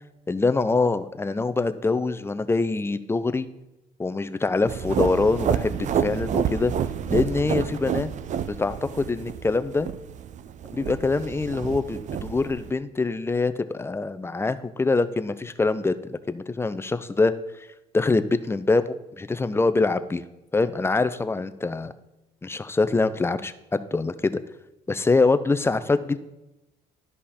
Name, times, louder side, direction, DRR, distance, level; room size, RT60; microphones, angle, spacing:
voice 1, 0.3-3.5 4.0-6.7 7.1-8.1 8.5-9.9 10.7-17.4 17.9-20.2 20.5-21.9 22.4-24.4 24.9-26.2, left 3 dB, 15° left, 12 dB, 0.5 m, -24 dB
sound 1, 4.7-12.7, right 8 dB, 45° right, 0.5 m, -29 dB
12.0 x 5.4 x 4.2 m, 0.97 s
cardioid pair, 110°, 17 cm